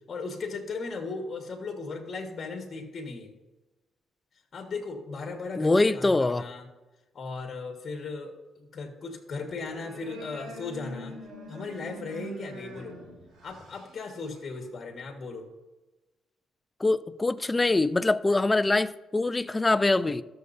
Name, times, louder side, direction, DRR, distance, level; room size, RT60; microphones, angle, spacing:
voice 1, 0.1-3.3 4.5-6.7 7.1-11.2 11.5-13.0 13.4-15.5, left 4 dB, 45° left, 1.5 m, -37 dB
voice 2, 5.6-6.5 16.8-20.2, left 2 dB, 20° left, 0.4 m, -24 dB
sound 1, 9.4-14.6, right 1 dB, 60° right, 3.0 m, -44 dB
13.5 x 6.7 x 2.7 m
cardioid pair, 90°, 0 cm